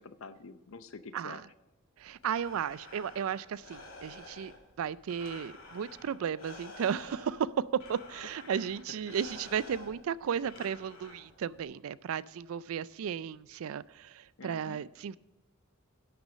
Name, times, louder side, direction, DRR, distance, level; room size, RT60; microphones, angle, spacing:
voice 1, 0.0-1.4 8.4-8.6 9.1-9.2 14.4-14.8, left 4 dB, 75° left, 12 dB, 0.7 m, -47 dB
voice 2, 1.1-1.5 2.0-4.5 4.8-15.2, right 8 dB, 85° right, 19 dB, 0.4 m, -34 dB
Breathing, 2.0-11.6, left 2 dB, 90° left, 2.6 m, -51 dB
11.0 x 6.1 x 6.2 m, 1.0 s
head